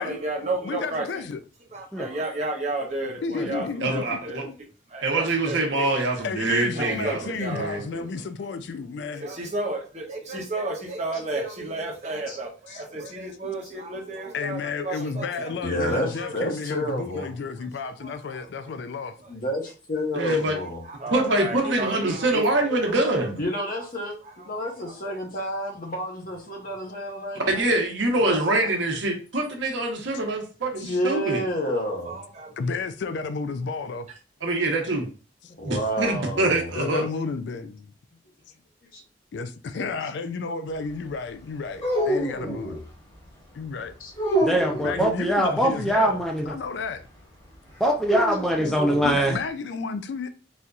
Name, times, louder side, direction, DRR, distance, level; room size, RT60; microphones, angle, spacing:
voice 1, 0.0-1.2 1.7-4.4 4.9-6.3 6.8-7.9 9.1-15.8 16.1-16.3 17.1-17.3 17.6-17.7 18.0-18.7 20.2-20.4 20.8-22.5 22.8-22.9 24.2-24.5 24.8-25.1 31.9-32.6, right 2 dB, 35° right, 0.8 m, -33 dB
voice 2, 0.6-1.4 3.2-4.2 4.4-4.5 6.2-9.3 12.7-12.8 14.3-19.2 30.8-31.0 32.6-34.1 36.7-37.9 39.3-42.8 43.5-44.0 44.8-47.1 49.0-50.3, left 4 dB, 70° left, 0.3 m, -32 dB
voice 3, 3.8-4.4 5.0-7.2 7.5-8.0 20.1-20.5 21.1-23.4 27.5-31.4 34.4-35.1 35.6-37.0, right 2 dB, 80° right, 1.0 m, -24 dB
voice 4, 15.6-17.3 19.3-20.8 23.4-24.2 24.5-27.6 28.3-28.7 30.8-32.2 35.6-36.7 44.0-44.1, equal, 50° left, 0.9 m, -29 dB
sound 1, 41.8-42.8 44.1-45.0 48.0-49.1, right 1 dB, 25° left, 1.3 m, -26 dB
voice 5, 44.4-46.5 47.8-49.4, right 1 dB, ahead, 0.4 m, -23 dB
4.1 x 2.6 x 2.3 m
head